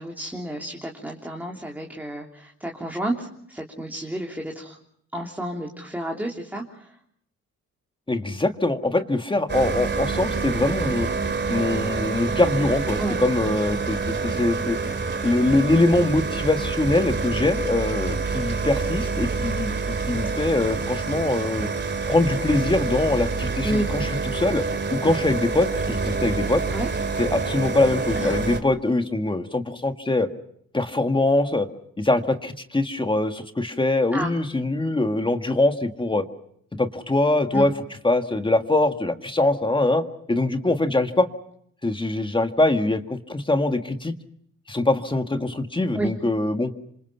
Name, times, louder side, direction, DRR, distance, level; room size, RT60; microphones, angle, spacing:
voice 1, 0.0-4.8 5.1-7.0 13.0-13.2 23.6-23.9 26.7-26.9 28.1-28.4 34.1-34.3 37.5-37.7 45.9-46.1, right 1 dB, 5° right, 0 dB, 3.4 m, -30 dB
voice 2, 8.1-11.1 11.5-14.8 15.2-21.7 22.1-24.6 24.9-26.6 27.2-30.3 30.7-31.7 32.0-36.3 36.8-37.7 38.0-41.3 41.8-44.1 44.7-46.7, left 2 dB, 15° left, 7 dB, 1.8 m, -23 dB
sound 1, 9.5-28.6, right 4 dB, 35° right, 2.8 m, -27 dB
28.0 x 26.5 x 5.7 m, 0.68 s
cardioid pair, 90°, 30 cm